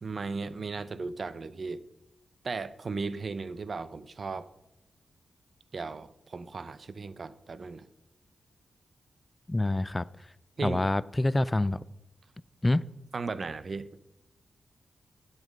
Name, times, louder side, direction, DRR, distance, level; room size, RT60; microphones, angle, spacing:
voice 1, 0.0-1.8 2.4-4.5 5.7-7.9 10.6-10.8 13.1-13.9, right 4 dB, 50° right, 0.5 m, -36 dB
voice 2, 9.5-10.0 10.6-11.8 12.6-12.8, left 2 dB, 15° left, 0.3 m, -26 dB
9.6 x 7.8 x 5.2 m
wide cardioid pair, 90°, 0 cm